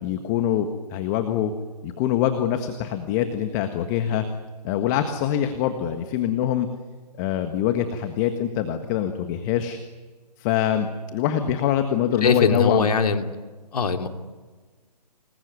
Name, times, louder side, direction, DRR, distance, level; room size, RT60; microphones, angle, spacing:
voice 1, 0.0-1.5 1.8-4.2 4.6-6.7 7.2-9.8 10.4-12.9, left 10 dB, 25° left, 8 dB, 1.6 m, -24 dB
voice 2, 12.2-13.2 13.7-14.1, left 5 dB, 65° left, 6 dB, 2.8 m, -21 dB
27.0 x 21.0 x 9.6 m, 1.4 s
figure-of-eight pair, 140°, 21 cm